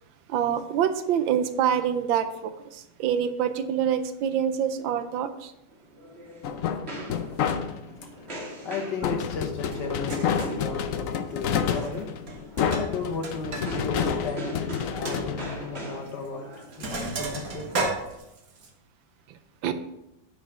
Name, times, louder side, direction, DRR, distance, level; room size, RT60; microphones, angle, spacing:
voice 1, 0.3-5.5 19.3-19.7, right 9 dB, 80° right, 1.4 m, -26 dB
sound 1, 5.7-18.2, right 1 dB, 35° right, 1.7 m, -41 dB
sound 2, 6.4-8.0 9.0-16.2, left 7 dB, 85° left, 0.7 m, -29 dB
voice 2, 8.6-12.1 12.8-16.5 16.8-17.9, left 4 dB, 65° left, 1.7 m, -35 dB
Sink (filling or washing), 9.7-9.8 10.1-10.6 11.6-12.0 12.3-13.7 14.0-14.1 14.5-14.6 15.1-15.2 16.1-16.3 16.5-18.7, right 3 dB, 50° right, 1.5 m, -33 dB
8.9 x 5.0 x 4.9 m
omnidirectional pair, 2.1 m